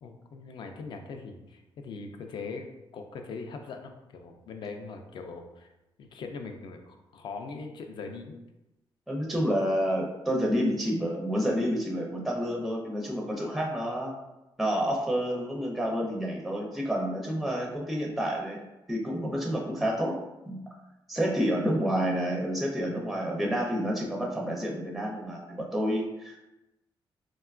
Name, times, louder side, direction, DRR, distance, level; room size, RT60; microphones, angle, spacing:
voice 1, 0.0-2.7 2.9-5.7 6.0-8.4, left 4 dB, 60° left, 5 dB, 0.4 m, -41 dB
voice 2, 9.1-14.2 14.6-18.6 18.9-20.1 20.5-20.6 21.1-26.4, equal, ahead, -2 dB, 0.4 m, -29 dB
3.6 x 2.2 x 2.3 m, 0.97 s
cardioid pair, 125°, 9 cm